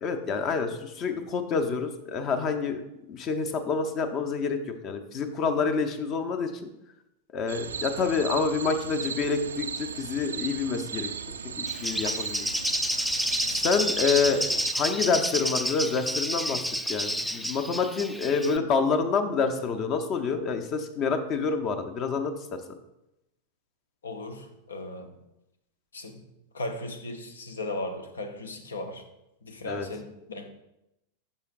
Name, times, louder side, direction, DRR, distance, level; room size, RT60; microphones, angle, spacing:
voice 1, 0.0-2.8 3.1-6.5 7.3-11.1 11.6-12.7 13.5-14.4 14.7-16.6 16.9-22.3 29.7-29.9, left 5 dB, 35° left, 8 dB, 0.7 m, -27 dB
sound 1, 7.5-14.7, right 6 dB, 70° right, 0.4 m, -36 dB
Bird, 11.7-18.6, equal, ahead, 0.4 m, -30 dB
voice 2, 24.0-25.2 25.9-26.3 26.5-29.0 29.4-30.5, left 2 dB, 70° left, 7 dB, 0.8 m, -37 dB
12.0 x 5.1 x 2.5 m, 0.87 s
figure-of-eight pair, 90°, 0 cm